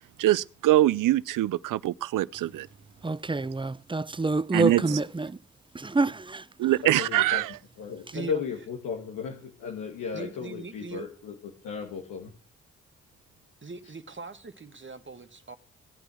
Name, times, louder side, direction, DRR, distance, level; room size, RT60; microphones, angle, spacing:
voice 1, 0.2-2.7 4.5-4.8 6.6-7.5, right 15 dB, 80° right, 0.6 m, -23 dB
voice 2, 3.0-5.4 5.7-6.5, right 3 dB, 15° right, 0.7 m, -27 dB
voice 3, 6.8-7.4 7.8-11.3 11.6-12.3, left 6 dB, 90° left, 1.8 m, -35 dB
voice 4, 8.1-8.4 10.1-11.1 13.6-15.6, right 4 dB, 40° right, 1.8 m, -40 dB
17.0 x 9.1 x 6.2 m
supercardioid pair, 40°, 31 cm